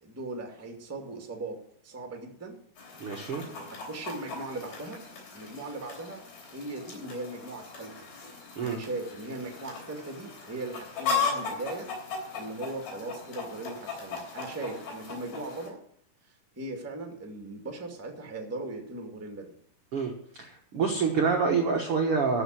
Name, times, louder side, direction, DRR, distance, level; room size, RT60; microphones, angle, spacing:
voice 1, 0.0-2.6 3.5-5.0 5.3-6.2 6.5-8.1 8.6-11.9 12.3-15.8 16.2-19.5, right 2 dB, 10° right, 3 dB, 1.0 m, -39 dB
Chicken rooster, 2.8-15.7, left 5 dB, 60° left, 5.0 m, -37 dB
voice 2, 3.0-3.4 8.6-8.8 19.9-20.1 20.4-22.4, right 5 dB, 80° right, 2 dB, 1.2 m, -27 dB
13.0 x 6.4 x 7.6 m, 0.65 s
omnidirectional pair, 4.7 m